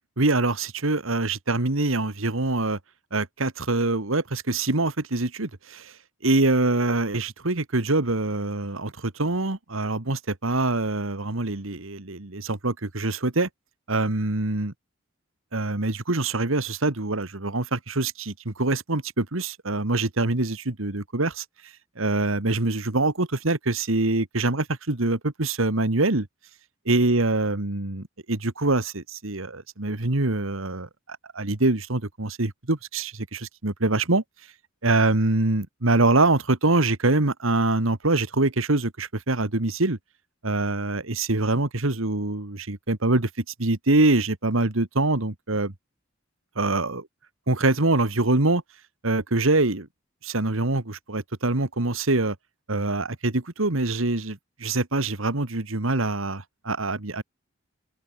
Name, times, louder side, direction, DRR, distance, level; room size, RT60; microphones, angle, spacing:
voice 1, 0.2-2.8 3.1-6.0 6.2-13.5 13.9-14.7 15.5-26.3 26.9-34.2 34.8-40.0 40.4-45.7 46.6-47.0 47.5-48.6 49.0-49.9 50.2-52.4 52.7-57.2, right 2 dB, 75° right, 1.9 m, -24 dB
head